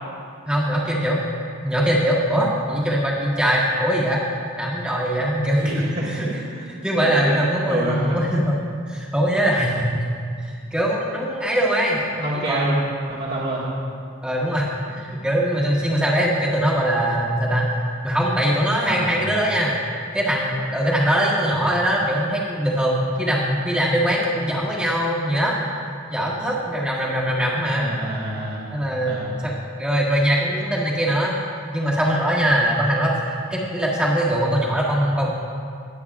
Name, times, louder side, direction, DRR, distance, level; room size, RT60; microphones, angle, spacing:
voice 1, 0.5-1.3 1.6-4.2 4.6-6.3 6.7-8.6 8.9-10.0 10.7-12.0 12.5-12.9 13.6-13.8 14.2-14.7 15.0-17.7 18.0-19.8 20.1-25.7 26.1-27.9 28.7-29.5 29.8-31.3 31.7-35.3, equal, 5° right, -5 dB, 1.6 m, -22 dB
voice 2, 5.6-6.6 6.9-7.4 7.7-8.2 11.9-12.8 13.1-13.6 18.8-19.3 27.8-28.7 29.0-29.4, right 1 dB, 50° right, -8 dB, 1.8 m, -28 dB
21.5 x 8.7 x 2.4 m, 2.2 s
head